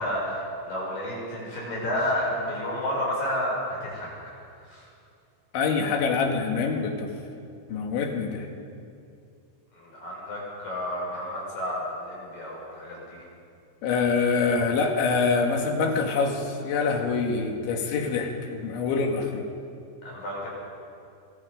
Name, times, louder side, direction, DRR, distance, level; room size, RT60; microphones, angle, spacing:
voice 1, 0.0-4.1 4.7-4.9 9.7-13.2 20.0-20.5, left 1 dB, 50° left, -5 dB, 8.5 m, -31 dB
voice 2, 5.5-7.1 7.7-8.5 13.8-19.5, left 4 dB, 80° left, 2 dB, 4.4 m, -25 dB
25.0 x 24.5 x 5.3 m, 2.4 s
omnidirectional pair, 5.2 m